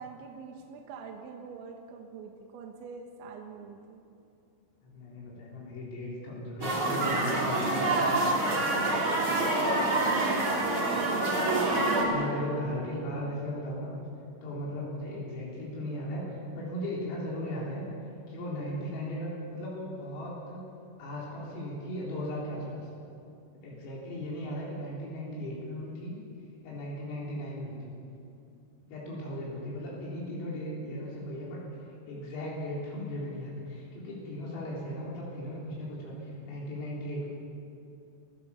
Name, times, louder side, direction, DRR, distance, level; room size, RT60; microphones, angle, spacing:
voice 1, 0.0-4.0 8.9-11.3, right 5 dB, 75° right, 2 dB, 3.5 m, -42 dB
voice 2, 4.8-8.3 12.0-14.0 14.4-17.9 18.3-20.6 21.0-22.9 23.5-26.2 26.6-27.9 28.9-31.6 32.1-37.3, equal, 85° left, -5 dB, 6.4 m, -37 dB
sound 1, 6.6-12.1, right 2 dB, 30° right, 3.3 m, -27 dB
27.5 x 16.0 x 7.1 m, 2.6 s
omnidirectional pair, 5.8 m